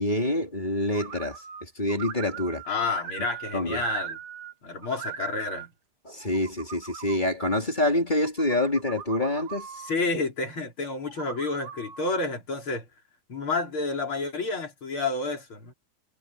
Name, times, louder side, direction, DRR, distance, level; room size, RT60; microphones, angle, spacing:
voice 1, 0.0-2.6 3.5-3.8 6.0-9.8, left 1 dB, 10° left, 2.6 m, -27 dB
sound 1, 0.9-1.6 1.9-4.5 4.8-5.7 6.2-7.2 8.1-10.0 11.1-12.2, right 8 dB, 55° right, 2.1 m, -40 dB
voice 2, 2.6-4.2 4.6-5.7 9.8-12.9 13.3-15.7, left 3 dB, 30° left, 4.9 m, -30 dB
omnidirectional pair, 5.0 m